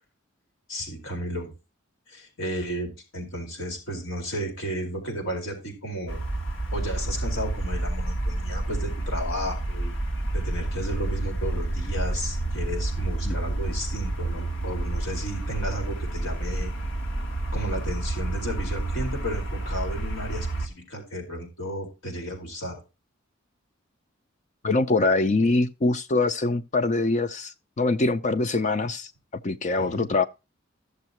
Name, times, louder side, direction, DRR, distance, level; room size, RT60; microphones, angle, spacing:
voice 1, 0.7-1.5 2.1-6.2 6.7-9.9 10.3-16.7 17.5-22.8 29.8-30.1, equal, 85° left, 4.4 m, -33 dB
sound 1, 6.1-20.7, right 2 dB, 65° left, 1.6 m, -29 dB
voice 2, 24.6-29.1 29.4-30.2, left 3 dB, 35° left, 0.5 m, -24 dB
14.5 x 6.7 x 2.9 m
head